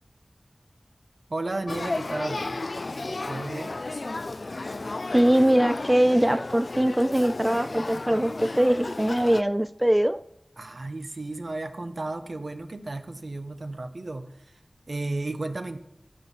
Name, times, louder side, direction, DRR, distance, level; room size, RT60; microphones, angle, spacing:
voice 1, 1.3-2.6 3.1-3.8 10.6-14.6 14.9-15.8, right 2 dB, 70° right, 1.0 m, -33 dB
Male speech man speaking / Child speech kid speaking / Conversation, 1.7-9.4, left 2 dB, 70° left, 0.3 m, -33 dB
voice 2, 5.1-10.2, right 1 dB, 15° right, 0.4 m, -22 dB
15.0 x 5.4 x 6.0 m
wide cardioid pair, 40°, 0 cm